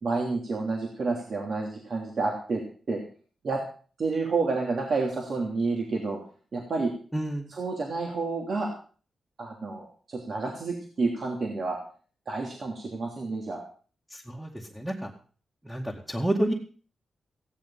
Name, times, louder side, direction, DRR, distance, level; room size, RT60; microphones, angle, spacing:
voice 1, 0.0-2.6 2.9-3.0 3.4-3.6 4.0-6.2 6.5-6.9 7.5-8.7 9.4-11.8 12.3-13.6, right 3 dB, 60° right, 0 dB, 3.1 m, -29 dB
voice 2, 7.1-7.5 14.1-15.1 15.6-16.5, right 1 dB, 5° right, -1 dB, 2.3 m, -30 dB
15.5 x 10.5 x 5.8 m, 0.41 s
cardioid pair, 70°, 0 cm